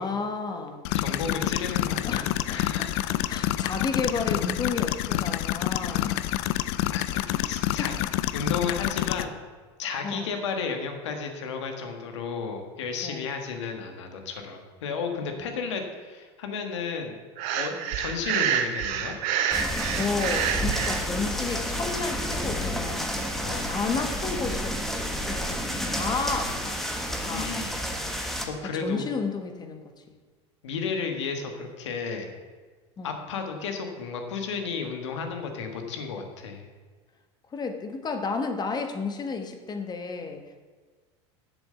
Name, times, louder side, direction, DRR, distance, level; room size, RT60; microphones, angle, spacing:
voice 1, 0.0-0.8 2.0-6.2 7.3-7.4 7.8-7.9 10.0-10.3 13.0-13.3 15.3-15.5 17.7-17.9 20.0-23.2 23.7-26.8 27.1-27.5 28.7-30.2 33.0-33.2 37.5-40.6, left 4 dB, 30° left, 6 dB, 1.3 m, -32 dB
sound 1, 0.8-9.2, left 14 dB, 65° left, 0.5 m, -28 dB
voice 2, 0.9-3.0 5.8-6.0 6.9-7.0 7.5-7.9 8.3-9.3 9.8-17.2 17.5-19.2 23.4-23.7 27.3-27.7 28.5-29.1 30.6-32.3 33.0-36.6, left 5 dB, 85° left, 5 dB, 1.6 m, -33 dB
Breathing, 17.4-21.0, right 8 dB, 60° right, 1.1 m, -27 dB
sound 2, 19.5-28.5, equal, ahead, 1.4 m, -30 dB
7.8 x 7.0 x 6.8 m, 1.5 s
supercardioid pair, 100°, 15 cm